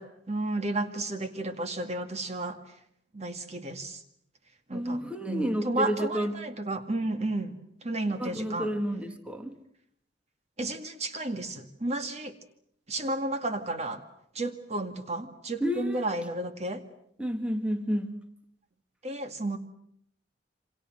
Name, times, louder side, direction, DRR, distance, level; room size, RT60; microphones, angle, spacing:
voice 1, 0.0-2.6 3.1-4.0 4.7-5.0 5.3-8.7 10.6-12.4 12.9-14.0 14.3-16.8 19.0-19.6, right 2 dB, 35° right, 8 dB, 2.1 m, -32 dB
voice 2, 4.7-6.5 8.2-9.6 15.6-16.1 17.2-18.2, equal, 5° right, 6 dB, 2.0 m, -30 dB
29.0 x 25.5 x 7.7 m, 0.71 s
head